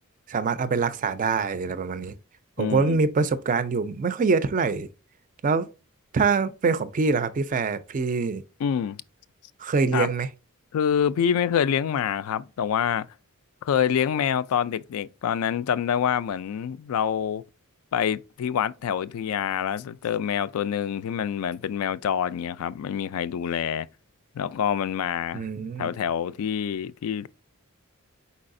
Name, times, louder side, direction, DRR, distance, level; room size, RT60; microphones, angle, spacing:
voice 1, 0.3-2.2 2.6-4.9 5.4-5.7 6.1-8.4 9.6-10.3 25.3-25.9, right 4 dB, 35° right, 0.4 m, -24 dB
voice 2, 2.6-3.0 8.6-9.0 9.9-10.1 10.7-13.1 13.6-17.4 17.9-23.9 24.4-25.5 25.8-27.3, left 8 dB, 70° left, 0.3 m, -26 dB
4.6 x 4.1 x 2.5 m
head